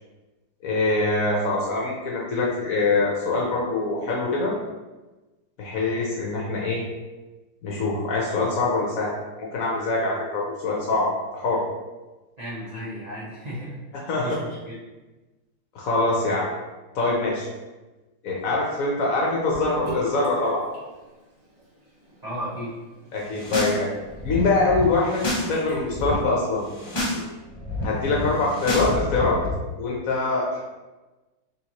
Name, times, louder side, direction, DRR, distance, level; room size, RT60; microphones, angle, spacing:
voice 1, 0.6-4.5 5.6-6.8 7.6-9.1 9.4-11.6 14.1-14.4 15.7-16.5 16.9-17.5 18.2-20.6 23.1-23.9 24.2-25.2 25.5-26.6 27.8-29.4 29.8-30.6, left 3 dB, 60° left, -3 dB, 0.9 m, -24 dB
voice 2, 12.4-14.8 22.2-22.7, equal, 80° right, -8 dB, 0.3 m, -35 dB
Sink (filling or washing) / Bathtub (filling or washing), 19.5-26.8, right 1 dB, 25° right, 1.2 m, -43 dB
sound 1, 23.2-23.8 24.0-25.5 25.8-26.1 26.6-27.2 27.5-29.5, left 2 dB, 25° left, 0.5 m, -29 dB
4.2 x 3.4 x 2.9 m, 1.2 s
omnidirectional pair, 2.0 m